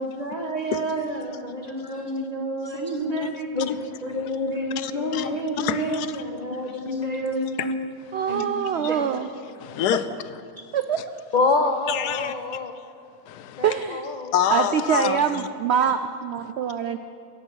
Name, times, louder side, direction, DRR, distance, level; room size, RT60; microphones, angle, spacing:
voice 1, 0.0-3.5 4.0-4.1 4.4-7.7 8.3-8.4 8.7-9.0, right 2 dB, 25° right, 1 dB, 1.5 m, -30 dB
voice 2, 4.0-5.5 6.5-6.6 6.9-7.3 11.3-12.7 13.6-14.3, left 3 dB, 55° left, 5 dB, 0.5 m, -27 dB
voice 3, 4.8-6.1 7.6-7.7 8.3-8.4 9.6-10.4 11.9-12.3 13.3-13.6 14.3-15.5, left 11 dB, 85° left, 12 dB, 1.2 m, -27 dB
voice 4, 8.1-9.3 10.7-11.0 13.6-14.0 14.5-17.0, right 8 dB, 80° right, 9 dB, 0.6 m, -24 dB
16.0 x 7.8 x 6.3 m, 2.5 s
omnidirectional pair, 1.7 m